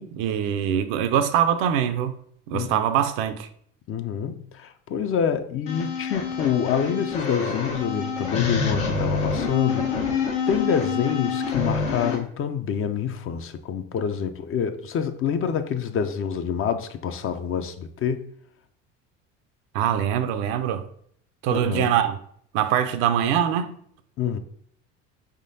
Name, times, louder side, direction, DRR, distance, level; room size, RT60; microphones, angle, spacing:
voice 1, 0.0-2.2 2.5-3.5 19.7-20.9 21.4-22.2 22.5-23.8, right 9 dB, 65° right, 0.6 m, -23 dB
voice 2, 2.5-2.9 3.9-10.2 10.5-18.2 21.5-21.9 24.2-24.4, left 8 dB, 35° left, 0.5 m, -27 dB
sound 1, 5.7-12.2, left 5 dB, 80° left, 1.2 m, -27 dB
4.9 x 3.6 x 2.7 m
hypercardioid pair, 70°, 37 cm